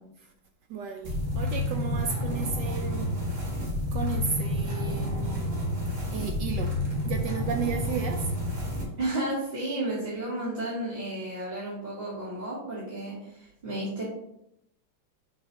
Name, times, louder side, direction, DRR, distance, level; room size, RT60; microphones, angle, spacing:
voice 1, 0.7-3.1 3.9-5.5 6.1-6.8 7.0-8.3, right 6 dB, 75° right, 5 dB, 1.0 m, -33 dB
sound 1, 1.0-8.8, left 1 dB, 35° right, 2.2 m, -30 dB
voice 2, 9.0-14.0, right 1 dB, 20° right, -9 dB, 2.1 m, -32 dB
6.7 x 3.4 x 5.6 m, 0.79 s
omnidirectional pair, 2.3 m